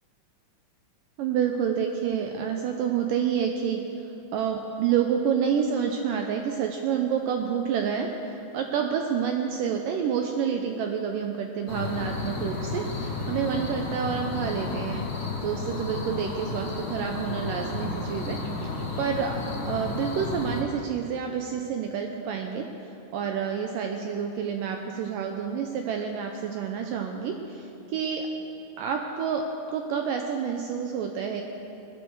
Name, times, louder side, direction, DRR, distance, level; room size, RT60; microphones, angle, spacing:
voice 1, 1.2-15.1 15.4-18.7 19.0-22.7 23.1-28.3 28.8-31.4, right 7 dB, 85° right, 3 dB, 1.9 m, -28 dB
sound 1, 11.7-20.6, left 3 dB, 35° left, 2.6 m, -32 dB
20.0 x 12.5 x 4.6 m, 2.9 s
omnidirectional pair, 4.8 m